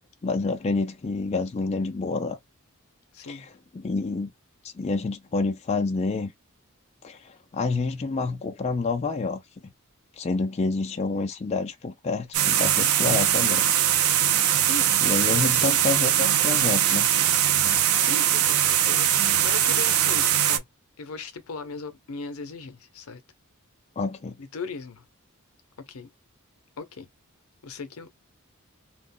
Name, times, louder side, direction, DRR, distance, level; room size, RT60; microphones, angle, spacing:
voice 1, 0.2-2.4 3.3-4.3 4.7-6.3 7.0-9.4 10.2-13.7 15.0-17.1 24.0-24.3, left 3 dB, 30° left, 0.3 m, -28 dB
voice 2, 3.1-3.5 14.6-14.9 15.3-15.8 18.0-19.1 19.4-20.7 21.0-23.2 24.4-25.0 25.8-26.1 26.8-27.1 27.6-28.1, left 4 dB, 80° left, 0.6 m, -37 dB
sound 1, 12.3-20.6, right 10 dB, 80° right, 0.5 m, -21 dB
2.4 x 2.0 x 3.6 m
head